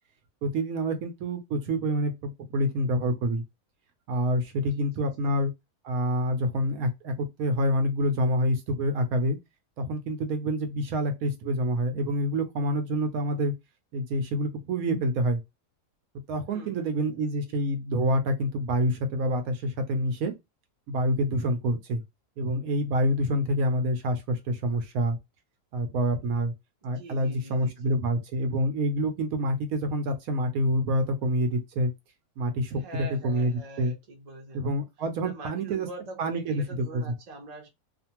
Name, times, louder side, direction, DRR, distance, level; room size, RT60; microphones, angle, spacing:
voice 1, 0.4-3.4 4.1-5.5 5.8-9.4 9.8-13.5 13.9-15.4 16.3-20.3 20.9-22.0 22.4-25.2 25.7-26.5 26.8-31.9 32.4-33.9 34.5-35.9 36.2-37.1, equal, 75° right, 1.0 m, -27 dB
voice 2, 4.6-5.3 16.5-17.5 26.8-27.9 32.8-34.7 35.2-37.7, right 1 dB, 40° right, 0.6 m, -44 dB
2.5 x 2.5 x 2.8 m
omnidirectional pair, 1.7 m